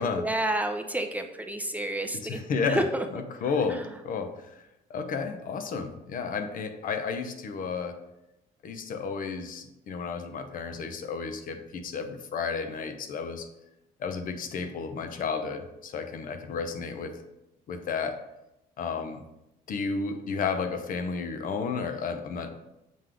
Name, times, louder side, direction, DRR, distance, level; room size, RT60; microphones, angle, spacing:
voice 1, 0.0-2.4 2.7-3.0 3.7-3.8, right 1 dB, 10° right, 5 dB, 0.6 m, -30 dB
voice 2, 2.1-2.9 3.1-8.0 8.6-13.5 14.0-17.2 17.7-18.2 18.8-19.2 19.7-22.5, left 5 dB, 55° left, 8 dB, 0.8 m, -32 dB
7.4 x 3.9 x 4.7 m, 0.90 s
cardioid pair, 110°, 17 cm